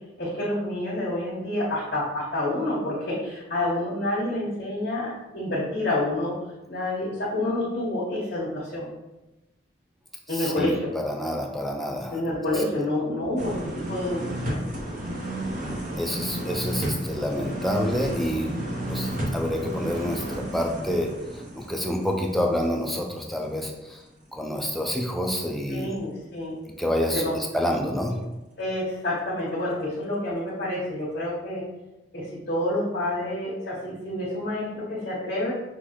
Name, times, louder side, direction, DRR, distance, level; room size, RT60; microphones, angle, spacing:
voice 1, 0.2-6.3 6.7-8.9 10.3-10.9 12.1-13.5 13.9-14.6 25.7-26.5 27.1-27.3 28.6-31.6 32.1-35.5, left 1 dB, 55° left, -8 dB, 1.2 m, -28 dB
voice 2, 10.3-12.2 12.5-12.6 16.0-24.0 24.3-25.9 26.7-28.2, equal, ahead, 1 dB, 0.3 m, -28 dB
sound 1, 13.4-23.2 23.5-23.6, right 1 dB, 45° right, 0.9 m, -32 dB
5.7 x 2.4 x 3.0 m, 1.0 s
head